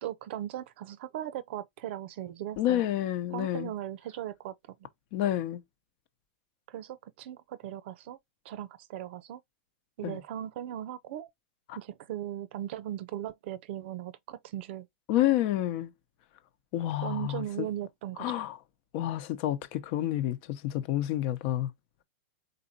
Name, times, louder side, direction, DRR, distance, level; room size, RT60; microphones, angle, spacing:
voice 1, 0.0-2.8 3.3-4.9 6.7-8.2 8.4-9.4 10.0-11.3 11.7-14.9 17.0-18.4, right 11 dB, 60° right, 0.6 m, -38 dB
voice 2, 2.6-3.7 5.1-5.6 10.0-10.2 11.7-11.8 15.1-15.9 16.7-17.7 18.2-18.6 18.9-21.7, left 13 dB, 50° left, 0.9 m, -29 dB
4.2 x 4.0 x 2.7 m
hypercardioid pair, 130°, 7 cm